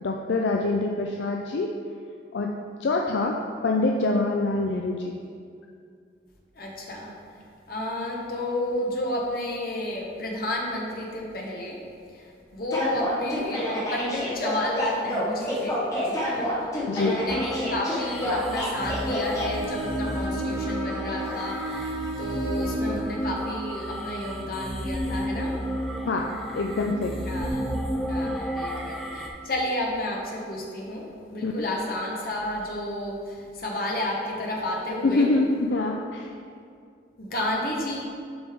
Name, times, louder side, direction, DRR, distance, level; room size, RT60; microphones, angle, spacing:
voice 1, 0.0-1.7 2.3-5.1 16.9-17.2 20.0-20.1 26.0-27.2 31.4-31.7 35.0-36.3, left 2 dB, 70° left, 1 dB, 0.4 m, -25 dB
voice 2, 6.6-7.1 7.7-11.8 12.1-12.2 12.5-15.8 16.0-16.5 16.9-25.6 27.2-27.7 28.1-35.3 37.2-38.0, left 1 dB, 50° left, -2 dB, 1.1 m, -31 dB
sound 1, 12.7-19.5, left 1 dB, 20° left, 1.1 m, -29 dB
sound 2, 17.3-29.3, equal, ahead, 0.4 m, -32 dB
Bowed string instrument, 19.3-23.0, right 1 dB, 20° right, 1.2 m, -35 dB
7.8 x 5.3 x 3.6 m, 2.3 s
head